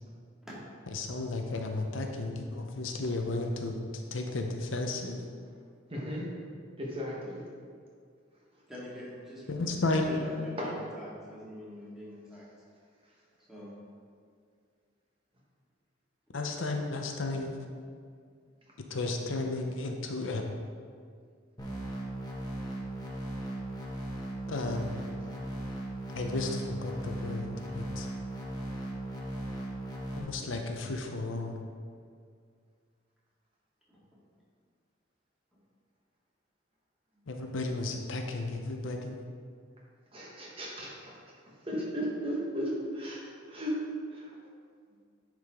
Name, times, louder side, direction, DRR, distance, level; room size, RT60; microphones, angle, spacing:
voice 1, 0.9-3.8 4.1-5.2 9.5-10.1 16.3-17.6 18.9-20.4 24.5-24.8 26.1-28.1 30.2-31.6 37.3-39.2, left 2 dB, 75° left, 3 dB, 0.7 m, -33 dB
voice 2, 5.9-6.3 6.8-7.4 10.6-10.7 16.6-16.7 40.1-41.1 41.7-43.2 43.5-43.7 44.1-44.3, equal, 25° right, -4 dB, 1.3 m, -35 dB
voice 3, 8.7-12.5 13.5-13.7 33.9-34.2, equal, ahead, -8 dB, 2.0 m, -45 dB
sound 1, 21.6-30.2, right 1 dB, 20° left, 1.0 m, -38 dB
10.5 x 4.9 x 3.7 m, 2.1 s
head